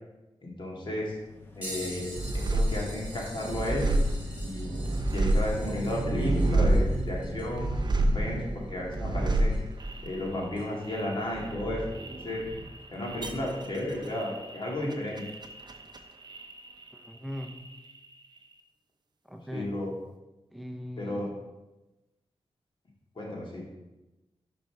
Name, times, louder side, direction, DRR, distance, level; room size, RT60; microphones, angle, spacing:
voice 1, 0.4-1.1 1.6-3.9 4.4-4.7 5.1-7.7 8.1-9.5 10.0-11.8 12.2-12.4 12.9-15.2 19.5-19.9 21.0-21.3 23.2-23.7, left 1 dB, 50° left, -3 dB, 2.1 m, -33 dB
sound 1, 0.8-7.5, left 3 dB, 20° left, 1.0 m, -45 dB
sound 2, 1.6-9.8 10.5-10.7 12.9-13.0 14.1-14.2 15.3-15.4, right 1 dB, 15° right, 1.8 m, -46 dB
sound 3, 2.2-17.1 17.3-18.1, right 1 dB, 40° right, 0.6 m, -30 dB
voice 2, 16.9-17.6 19.2-19.8 20.5-21.3, equal, ahead, 3 dB, 0.7 m, -40 dB
5.5 x 5.3 x 4.7 m, 1.0 s
cardioid pair, 60°, 11 cm